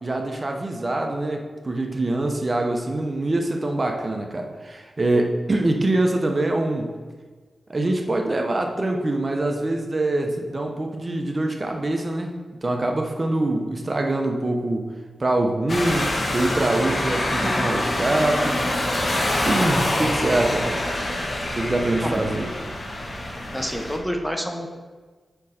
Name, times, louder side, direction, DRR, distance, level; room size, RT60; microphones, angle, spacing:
voice 1, 0.0-6.9 7.7-12.3 12.6-14.9 15.2-18.6 19.5-20.8 21.6-22.5, right 2 dB, 40° right, 3 dB, 0.7 m, -24 dB
sound 1, 15.7-24.0, left 1 dB, 40° left, 1.1 m, -25 dB
voice 2, 23.5-24.7, equal, ahead, 3 dB, 0.7 m, -28 dB
6.2 x 4.5 x 4.2 m, 1.4 s
cardioid pair, 65°, 0 cm